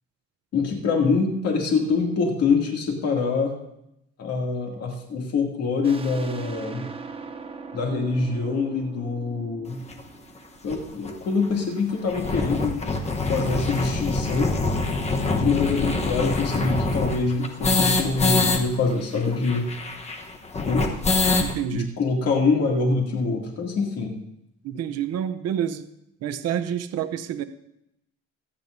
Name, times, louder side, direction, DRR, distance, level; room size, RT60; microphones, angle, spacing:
voice 1, 0.5-3.5 4.2-6.8 7.7-9.8 10.6-12.8 13.3-14.5 15.3-19.7 20.7-20.9 21.7-24.2, left 4 dB, 55° left, 0 dB, 2.4 m, -24 dB
sound 1, 5.8-11.2, right 4 dB, 20° right, 0.6 m, -39 dB
sound 2, 9.9-10.0 10.7-10.8 11.0-11.1 11.4-11.5 11.9-18.6 18.9-19.0 19.2-21.5, left 3 dB, 20° left, 1.0 m, -25 dB
voice 2, 21.4-21.9 24.6-25.9 26.2-27.4, right 9 dB, 55° right, 10 dB, 0.7 m, -28 dB
24.0 x 8.7 x 2.6 m, 0.80 s
cardioid pair, 160°, 31 cm